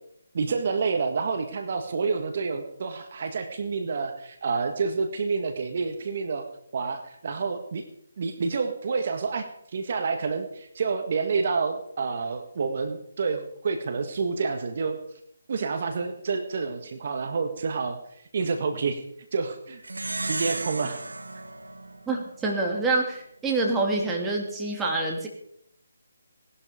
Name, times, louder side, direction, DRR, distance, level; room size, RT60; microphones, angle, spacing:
voice 1, 0.3-6.5 6.7-7.8 8.2-9.5 9.7-15.0 15.5-18.0 18.3-19.0 19.3-21.0, right 4 dB, 50° right, 7 dB, 1.8 m, -28 dB
Plucked string instrument, 19.8-22.7, right 2 dB, 85° right, 1.6 m, -34 dB
voice 2, 22.1-25.3, right 3 dB, 10° right, -1 dB, 2.6 m, -26 dB
19.0 x 11.5 x 5.2 m, 0.72 s
figure-of-eight pair, 155°, 0 cm